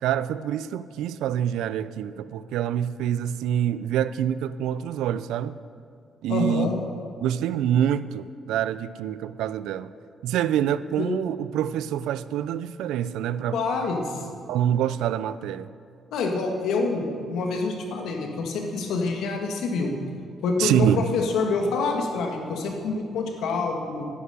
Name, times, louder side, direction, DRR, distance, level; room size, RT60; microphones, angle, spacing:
voice 1, 0.0-5.5 6.2-6.7 7.2-9.9 10.2-13.6 14.5-15.7 20.6-21.1, right 10 dB, 90° right, 15 dB, 0.4 m, -26 dB
voice 2, 6.3-6.7 11.0-11.1 13.5-14.2 16.1-19.9 20.4-24.1, left 4 dB, 85° left, 2 dB, 1.8 m, -27 dB
10.0 x 10.0 x 6.7 m, 2.3 s
cardioid pair, 90°, 0 cm